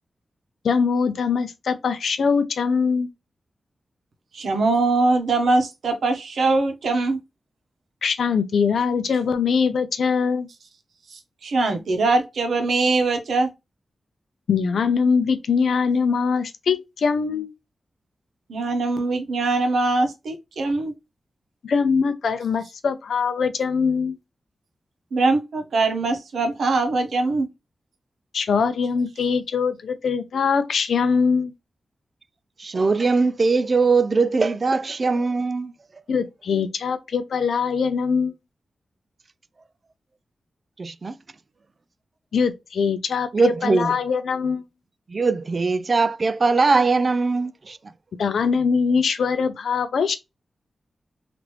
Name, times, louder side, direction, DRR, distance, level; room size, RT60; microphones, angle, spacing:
voice 1, 0.6-3.1 8.0-10.5 14.5-17.5 21.6-24.2 28.3-31.5 36.1-38.3 42.3-44.6 48.2-50.1, left 5 dB, 80° left, 0.5 m, -22 dB
voice 2, 4.3-7.2 11.4-13.5 18.5-20.9 25.1-27.5, right 3 dB, 80° right, 0.8 m, -22 dB
voice 3, 32.6-35.7 40.8-41.1 43.3-43.9 45.1-47.8, right 4 dB, 50° right, 0.3 m, -21 dB
3.0 x 2.5 x 3.1 m
cardioid pair, 50°, 0 cm